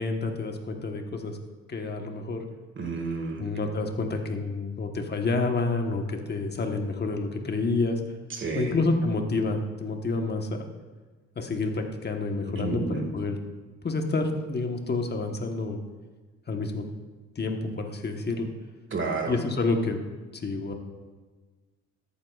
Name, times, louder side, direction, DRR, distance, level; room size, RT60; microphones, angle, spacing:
voice 1, 0.0-1.4 1.7-2.4 3.4-8.0 8.5-10.6 11.3-13.4 13.8-15.8 16.5-16.9 17.3-18.5 19.3-20.0 20.3-20.7, left 3 dB, 35° left, 4 dB, 1.2 m, -28 dB
voice 2, 2.8-3.5 8.3-8.7 12.5-13.1 18.9-19.4, right 3 dB, 40° right, 4 dB, 1.7 m, -31 dB
14.0 x 8.6 x 2.4 m, 1.3 s
cardioid pair, 90°, 30 cm